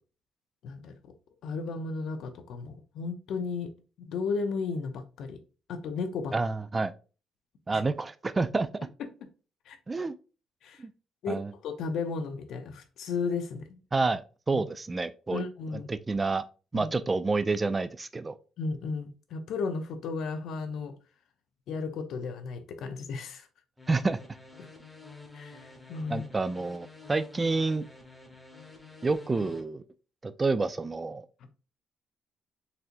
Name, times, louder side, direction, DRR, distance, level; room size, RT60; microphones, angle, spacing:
voice 1, 0.6-0.9 1.4-3.7 4.0-5.4 5.7-6.3 7.7-7.8 9.7-9.8 10.6-10.8 11.2-13.8 14.5-14.6 15.3-15.9 16.7-16.9 18.6-20.9 21.7-23.5 24.6-24.7 25.3-26.2, left 4 dB, 75° left, 0.6 m, -34 dB
voice 2, 6.3-6.9 7.7-8.7 9.9-10.1 10.8-10.9 11.3-11.5 13.9-14.2 14.5-15.4 15.9-16.4 16.7-18.4 23.9-24.2 26.1-27.8 29.0-29.8 30.2-31.2, right 3 dB, 25° right, 0.3 m, -28 dB
sound 1, 23.8-29.6, left 3 dB, 10° left, 0.9 m, -49 dB
4.0 x 2.7 x 2.5 m
cardioid pair, 90°, 0 cm